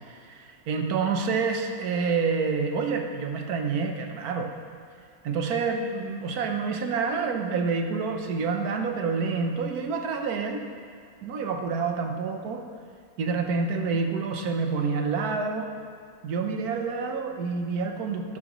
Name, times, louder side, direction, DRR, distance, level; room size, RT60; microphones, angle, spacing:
voice 1, 0.1-4.5 5.2-10.7 11.2-12.7 13.2-15.7 16.2-18.4, right 4 dB, 80° right, 4 dB, 1.4 m, -28 dB
12.5 x 10.5 x 3.0 m, 2.1 s
omnidirectional pair, 1.6 m